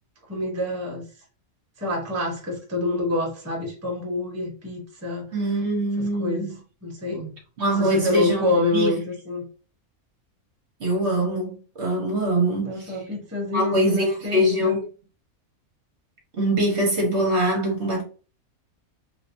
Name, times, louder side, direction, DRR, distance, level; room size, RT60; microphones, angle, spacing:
voice 1, 0.3-1.0 1.8-5.3 6.0-6.5 6.8-7.3 7.8-9.4 12.6-14.8, left 2 dB, 10° right, 0.9 m, -27 dB
voice 2, 5.3-6.5 7.6-8.9 10.8-13.0 13.5-14.8 16.4-18.0, right 1 dB, 55° right, 1.2 m, -23 dB
3.3 x 2.9 x 2.6 m
omnidirectional pair, 1.5 m